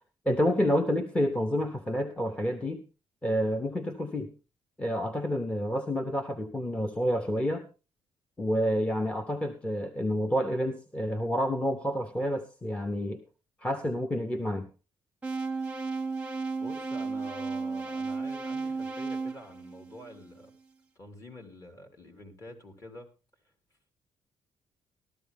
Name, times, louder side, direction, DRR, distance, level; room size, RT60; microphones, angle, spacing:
voice 1, 0.3-2.8 3.2-4.3 4.8-7.6 8.4-13.2 13.6-14.7, equal, 10° left, 5 dB, 1.0 m, -29 dB
sound 1, 15.2-20.4, right 4 dB, 10° right, 0.9 m, -34 dB
voice 2, 16.6-20.5 20.9-23.1, left 1 dB, 35° left, 6 dB, 3.0 m, -47 dB
14.0 x 13.0 x 3.5 m, 0.31 s
cardioid pair, 145°, 10 cm